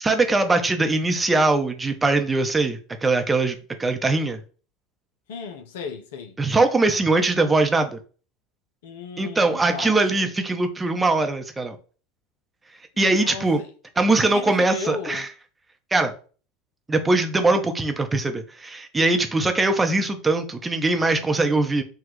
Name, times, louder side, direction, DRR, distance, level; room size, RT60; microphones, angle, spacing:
voice 1, 0.0-4.4 6.4-8.0 9.2-11.8 13.0-13.6 14.0-15.3 15.9-16.1 16.9-21.8, right 2 dB, 15° right, 0.7 m, -21 dB
voice 2, 5.3-6.4 8.8-10.3 12.9-13.7 14.2-15.3, left 5 dB, 75° left, 0.6 m, -35 dB
5.9 x 2.3 x 3.1 m
hypercardioid pair, 80°, 0 cm